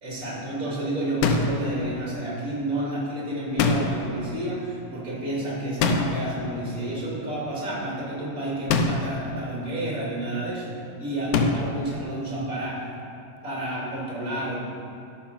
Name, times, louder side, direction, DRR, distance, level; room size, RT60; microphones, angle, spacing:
voice 1, 0.0-10.7 11.0-12.8 13.4-14.6, right 1 dB, 25° right, -6 dB, 3.0 m, -30 dB
sound 1, 1.2-1.7 3.6-4.2 5.8-6.4 8.7-9.2 11.3-11.8, left 4 dB, 85° left, 2.3 m, -23 dB
13.0 x 5.7 x 5.7 m, 2.7 s
omnidirectional pair, 3.6 m